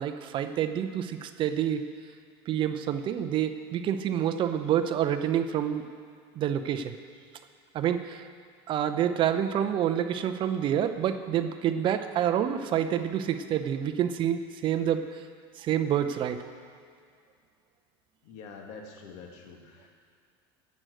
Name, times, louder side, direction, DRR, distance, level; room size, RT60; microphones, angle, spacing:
voice 1, 0.0-1.8 2.5-5.9 6.4-6.9 7.7-8.2 8.7-15.0 15.6-16.4, right 10 dB, 40° right, 9 dB, 0.7 m, -28 dB
voice 2, 18.2-19.9, left 5 dB, 60° left, 2 dB, 2.1 m, -46 dB
11.5 x 7.8 x 7.9 m, 2.2 s
supercardioid pair, 130°, 13 cm